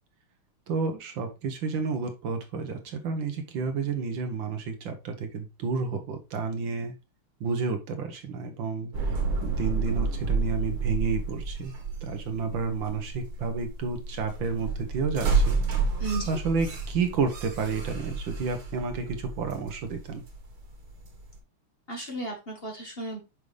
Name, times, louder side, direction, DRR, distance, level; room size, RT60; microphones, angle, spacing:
voice 1, 0.7-6.9 7.4-9.1 9.4-11.7 12.0-15.6 16.3-20.2, right 4 dB, 70° right, 5 dB, 1.8 m, -31 dB
sound 1, 8.9-21.4, right 4 dB, 85° right, 2.4 m, -30 dB
voice 2, 16.0-16.4 21.9-23.2, right 2 dB, 30° left, 1 dB, 1.5 m, -34 dB
6.7 x 5.4 x 3.3 m, 0.27 s
omnidirectional pair, 2.3 m